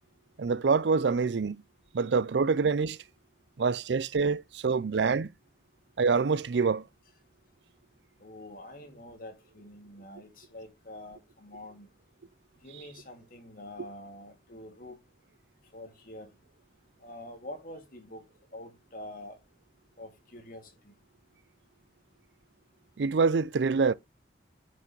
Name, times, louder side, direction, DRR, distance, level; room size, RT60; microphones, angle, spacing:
voice 1, 0.4-1.6 1.9-3.0 3.6-5.3 6.0-6.9 23.0-23.9, right 5 dB, 80° right, 0.5 m, -26 dB
voice 2, 8.2-11.9 12.6-15.0 15.7-16.4 17.0-18.2 18.5-19.4 20.0-21.0, left 1 dB, 50° left, 2.5 m, -46 dB
9.1 x 6.0 x 3.1 m
head